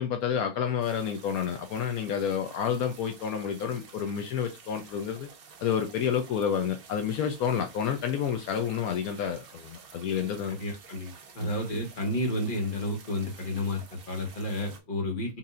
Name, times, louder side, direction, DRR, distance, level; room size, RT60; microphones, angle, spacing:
voice 1, 0.0-5.3 5.6-10.6 11.4-11.5, left 8 dB, 80° left, 1.1 m, -29 dB
sound 1, 0.8-14.8, right 5 dB, 50° right, 0.8 m, -51 dB
voice 2, 10.5-15.4, left 1 dB, 35° left, 1.4 m, -31 dB
5.6 x 2.7 x 2.5 m
omnidirectional pair, 1.5 m